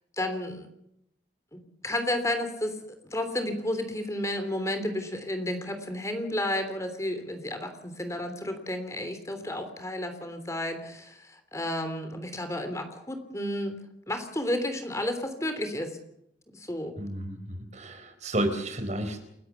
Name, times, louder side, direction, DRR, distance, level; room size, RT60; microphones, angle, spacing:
voice 1, 0.2-0.7 1.5-2.7 3.1-13.8 14.1-16.0 16.5-17.0, left 1 dB, 15° left, 7 dB, 3.2 m, -32 dB
voice 2, 17.0-19.2, right 1 dB, 40° right, 8 dB, 4.4 m, -31 dB
29.5 x 16.5 x 7.1 m, 0.77 s
head